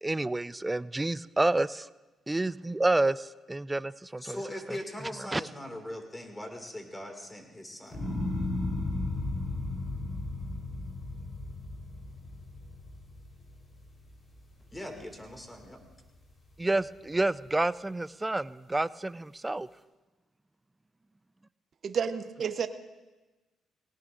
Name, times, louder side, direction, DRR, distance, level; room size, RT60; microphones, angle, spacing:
voice 1, 0.0-1.9 2.3-4.4 5.3-5.4 16.6-19.7, right 2 dB, 15° right, 18 dB, 0.3 m, -29 dB
voice 2, 4.2-8.1 14.7-15.8, left 1 dB, 15° left, 4 dB, 2.2 m, -40 dB
sound 1, 7.9-14.2 14.7-15.3, left 2 dB, 35° left, 3.9 m, -35 dB
voice 3, 21.8-22.7, right 7 dB, 50° right, 10 dB, 0.7 m, -30 dB
18.5 x 18.5 x 2.5 m, 1.1 s
cardioid pair, 90°, 0 cm